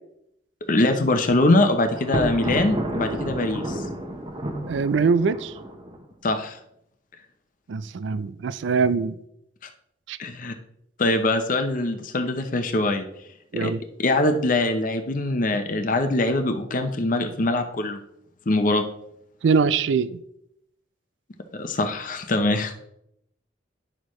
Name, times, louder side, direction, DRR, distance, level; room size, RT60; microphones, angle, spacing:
voice 1, 0.7-3.8 6.2-6.6 10.2-10.5 11.0-13.1 13.5-13.7 14.0-18.0 18.5-18.8 21.5-22.7, left 2 dB, 45° left, 0.7 m, -23 dB
Thunder, 1.9-6.0, right 1 dB, 25° right, 0.9 m, -30 dB
voice 2, 4.7-5.5 7.7-9.2 10.1-10.2 13.5-13.8 19.4-20.2, right 5 dB, 80° right, 0.4 m, -22 dB
9.9 x 6.4 x 3.1 m
head